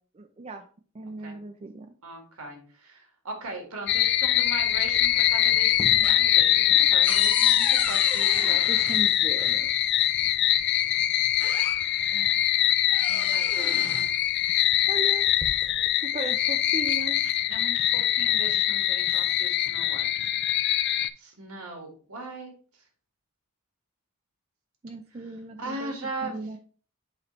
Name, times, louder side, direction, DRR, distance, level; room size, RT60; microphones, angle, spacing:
voice 1, 0.2-0.7 0.9-1.9 8.7-9.7 14.9-15.3 16.0-17.2 24.8-25.9 26.2-26.6, right 3 dB, 30° right, 7 dB, 0.4 m, -37 dB
voice 2, 2.0-8.7 12.1-12.4 13.1-14.1 17.5-20.1 21.2-22.8 25.6-26.6, right 2 dB, 85° right, 3 dB, 2.0 m, -39 dB
sound 1, 3.9-21.1, left 12 dB, 50° left, 0.3 m, -23 dB
sound 2, 4.6-5.3 5.6-9.6 10.7-10.8 11.2-12.1 12.5-14.2 15.1-15.9, left 1 dB, 5° left, 1.0 m, -37 dB
7.6 x 3.1 x 4.3 m, 0.41 s
head